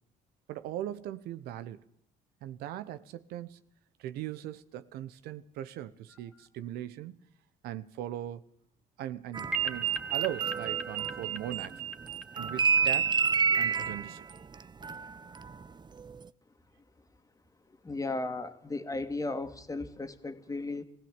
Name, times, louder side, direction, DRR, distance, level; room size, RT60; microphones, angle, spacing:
voice 1, 0.5-1.8 2.4-3.6 4.0-7.2 7.6-8.4 9.0-11.8 12.3-13.2 13.6-14.3, right 12 dB, 85° right, 1.0 m, -39 dB
sound 1, 9.3-11.7 12.0-15.7 16.0-16.3, right 5 dB, 30° right, 0.8 m, -30 dB
sound 2, 9.5-13.6, right 9 dB, 5° right, 2.6 m, -35 dB
voice 2, 17.7-20.8, left 2 dB, 20° left, 2.3 m, -35 dB
19.5 x 16.0 x 8.9 m
supercardioid pair, 80°, 16 cm